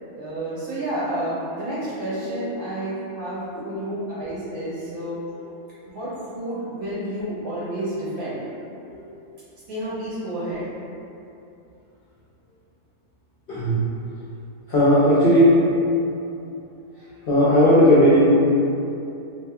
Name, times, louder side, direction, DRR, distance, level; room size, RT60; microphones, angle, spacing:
voice 1, 0.1-5.2 5.9-8.4 9.7-10.7, right 1 dB, 70° right, -10 dB, 1.2 m, -30 dB
voice 2, 13.5-13.8 14.7-15.6 17.3-18.2, equal, 65° left, -10 dB, 0.5 m, -16 dB
3.5 x 2.9 x 2.3 m, 2.8 s
omnidirectional pair, 1.6 m